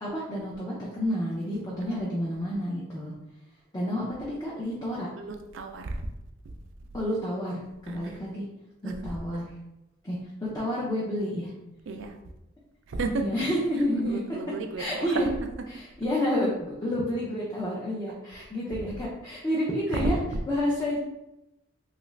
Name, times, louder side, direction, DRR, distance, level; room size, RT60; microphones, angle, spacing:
voice 1, 0.0-3.1 3.7-5.1 6.9-8.4 8.8-9.4 10.0-11.5 13.1-14.2 14.8-15.3 15.7-20.2 20.5-21.0, equal, 20° left, -6 dB, 0.5 m, -29 dB
voice 2, 5.2-6.1 7.9-8.2 8.9-9.2 11.9-12.2 12.9-13.3 14.0-15.2 18.7-18.8 19.9-20.4, right 3 dB, 65° right, 5 dB, 0.4 m, -33 dB
3.0 x 2.4 x 3.1 m, 0.93 s
head